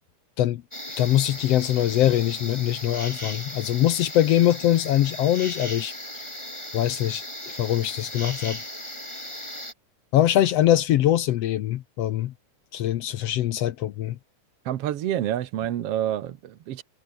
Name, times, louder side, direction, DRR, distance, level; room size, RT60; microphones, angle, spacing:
sound 1, 0.7-9.7, left 1 dB, 10° left, 6.3 m, -37 dB
voice 1, 1.0-5.9 6.7-8.6 10.1-12.3 12.7-14.2, left 12 dB, 70° left, 1.6 m, -22 dB
voice 2, 14.7-16.8, right 11 dB, 60° right, 1.8 m, -28 dB
omnidirectional pair, 3.7 m